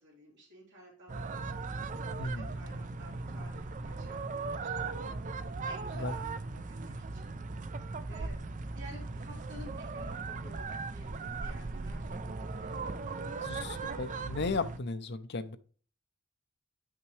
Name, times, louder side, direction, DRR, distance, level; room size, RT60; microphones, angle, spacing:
voice 1, 0.0-7.3 8.1-8.4 8.7-14.2, equal, 60° right, 3.2 m, -53 dB
sound 1, 1.1-14.8, right 3 dB, 40° right, 0.5 m, -38 dB
voice 2, 2.2-2.5 5.9-6.1 13.4-15.6, left 3 dB, 55° left, 0.6 m, -35 dB
9.2 x 5.8 x 3.2 m
head